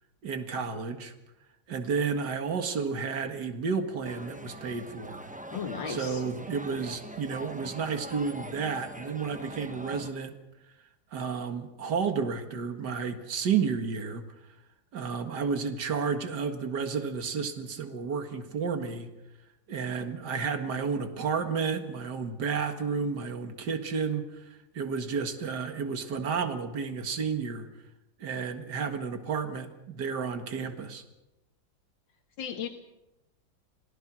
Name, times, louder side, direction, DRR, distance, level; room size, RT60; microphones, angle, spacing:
voice 1, 0.2-1.1 1.7-5.2 5.9-10.3 11.1-14.3 14.9-19.1 19.7-27.7 28.2-31.0, right 5 dB, 60° right, 7 dB, 2.4 m, -31 dB
sound 1, 4.0-10.1, right 1 dB, 10° right, 0.6 m, -43 dB
voice 2, 5.5-6.2 32.4-32.7, left 7 dB, 80° left, 2 dB, 2.1 m, -35 dB
28.0 x 18.5 x 6.2 m, 0.97 s
omnidirectional pair, 2.1 m